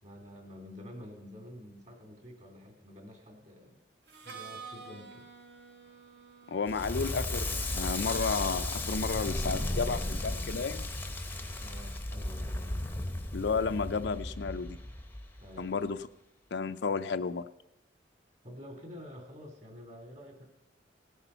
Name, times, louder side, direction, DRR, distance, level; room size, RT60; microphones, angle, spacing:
voice 1, 0.0-3.8 4.2-5.3 11.6-12.8 15.4-15.8 18.4-20.5, left 1 dB, 35° right, 2 dB, 2.8 m, -49 dB
Harmonica, 4.1-9.8, right 5 dB, 55° right, 1.4 m, -51 dB
voice 2, 6.5-10.9 13.3-14.8 15.6-16.0 16.5-17.5, left 5 dB, 60° left, 10 dB, 0.5 m, -32 dB
Crackle, 6.7-15.6, left 1 dB, 10° left, 0.7 m, -35 dB
17.5 x 8.2 x 5.6 m, 0.93 s
head